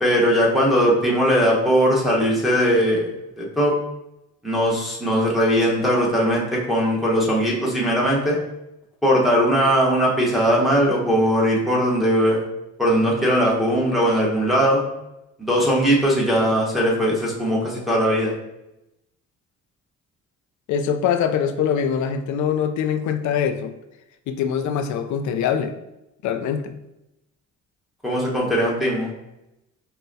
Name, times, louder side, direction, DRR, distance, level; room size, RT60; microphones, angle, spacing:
voice 1, 0.0-3.1 3.4-3.7 4.4-8.4 9.0-12.4 12.8-14.8 15.4-18.3 28.0-29.1, equal, ahead, -5 dB, 1.1 m, -19 dB
voice 2, 20.7-23.7 24.3-25.7 26.2-26.7, left 8 dB, 70° left, 8 dB, 0.4 m, -23 dB
5.5 x 2.2 x 2.6 m, 0.91 s
cardioid pair, 90°, 30 cm